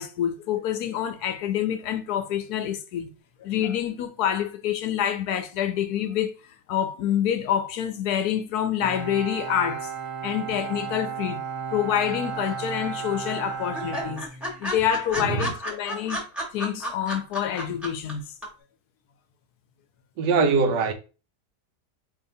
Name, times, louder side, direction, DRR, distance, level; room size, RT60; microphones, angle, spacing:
voice 1, 0.0-3.1 3.4-9.9 10.2-11.4 11.7-14.2 14.6-16.2 16.5-18.2, left 10 dB, 70° left, 1.0 m, -27 dB
Bowed string instrument, 8.8-15.0, right 6 dB, 65° right, 0.9 m, -34 dB
sound 1, 12.1-12.7 13.0-13.1 13.4-13.5 13.7-18.1 18.4-18.5, equal, ahead, 0.9 m, -32 dB
voice 2, 15.2-15.5 20.2-20.9, right 4 dB, 90° right, 1.3 m, -22 dB
4.6 x 2.7 x 2.6 m
omnidirectional pair, 1.8 m